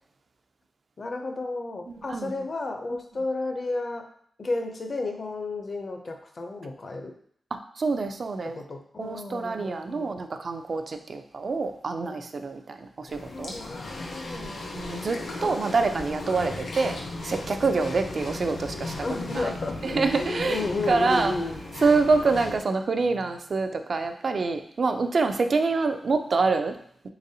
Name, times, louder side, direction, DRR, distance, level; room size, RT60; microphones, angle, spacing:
voice 1, 1.0-4.1 4.4-7.1 8.4-10.1 12.0-12.3 13.3-14.6 15.4-15.7 19.0-21.6, left 2 dB, 45° left, 4 dB, 0.5 m, -33 dB
voice 2, 1.9-2.3 7.5-8.6 9.0-13.5 14.4-17.0 17.2-18.9 19.3-19.5 19.8-21.3 21.8-26.8, right 4 dB, 55° right, 7 dB, 0.3 m, -26 dB
sound 1, 13.1-22.6, left 2 dB, 80° left, 0.7 m, -36 dB
3.9 x 3.3 x 2.7 m, 0.63 s
wide cardioid pair, 125°, 0 cm